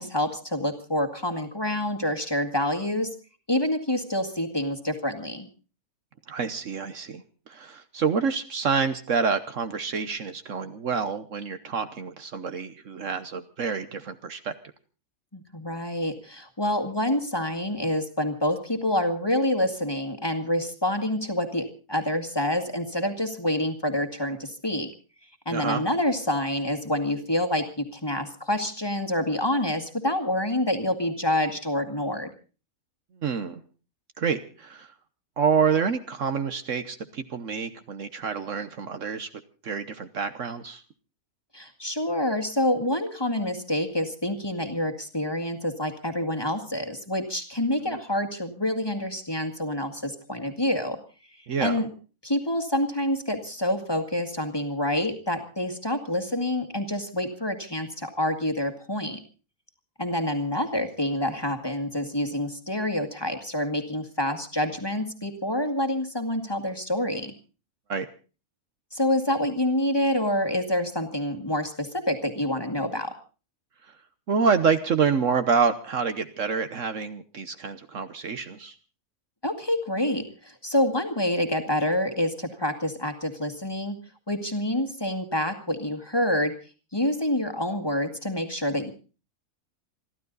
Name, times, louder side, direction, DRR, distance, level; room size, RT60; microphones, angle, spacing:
voice 1, 0.0-3.1 3.5-5.5 15.3-24.9 25.5-32.3 41.5-51.0 51.4-51.9 52.2-59.2 60.0-67.3 68.9-73.1 79.4-84.0 84.3-86.5 86.9-88.9, left 1 dB, 15° left, 5 dB, 1.9 m, -27 dB
voice 2, 6.3-14.5 25.5-25.8 33.2-33.6 34.2-34.9 35.4-39.3 39.6-40.8 47.8-48.0 51.5-51.8 67.9-68.1 74.3-78.7, right 6 dB, 60° right, 10 dB, 1.3 m, -27 dB
28.0 x 12.0 x 4.0 m, 0.36 s
omnidirectional pair, 1.5 m